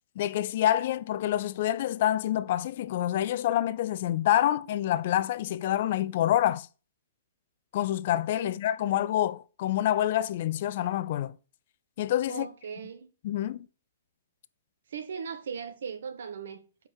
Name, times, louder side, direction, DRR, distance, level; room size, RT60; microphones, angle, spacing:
voice 1, 0.2-6.7 7.7-11.3 12.0-12.5 13.2-13.6, left 12 dB, 55° left, 0.5 m, -27 dB
voice 2, 8.8-9.1 12.3-13.1 14.9-16.9, right 6 dB, 70° right, 1.3 m, -39 dB
7.4 x 4.7 x 6.4 m
hypercardioid pair, 130°, 0 cm